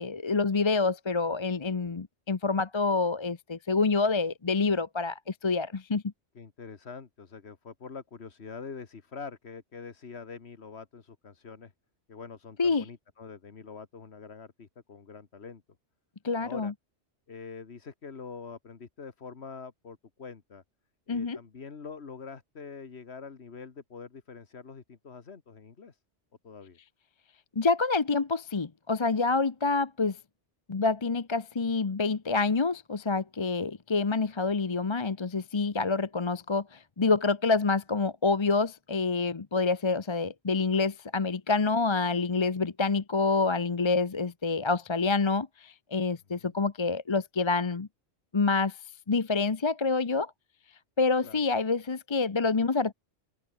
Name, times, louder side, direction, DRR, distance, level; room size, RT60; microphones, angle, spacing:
voice 1, 0.0-6.0 12.6-12.9 16.2-16.7 21.1-21.4 27.6-30.2 30.7-47.9 48.3-48.8 49.1-50.3 51.0-52.9, left 4 dB, 30° left, 0.7 m, -27 dB
voice 2, 6.4-11.7 12.1-15.6 16.4-16.7 17.3-20.6 21.1-26.0 26.4-26.8 46.4-46.6 51.2-51.4, left 5 dB, 65° left, 1.9 m, -45 dB
open air
omnidirectional pair, 1.2 m